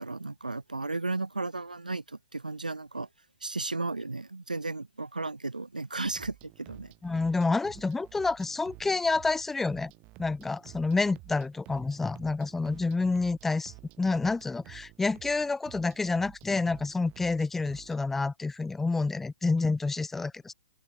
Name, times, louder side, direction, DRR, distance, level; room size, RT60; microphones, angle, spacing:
voice 1, 0.0-3.1 3.4-6.9, right 3 dB, 85° right, 2.8 m, -34 dB
sound 1, 6.0-18.0, right 23 dB, 30° right, 4.7 m, -52 dB
voice 2, 7.0-9.9 10.2-20.5, left 3 dB, 5° left, 0.8 m, -28 dB
figure-of-eight pair, 120°, 4 cm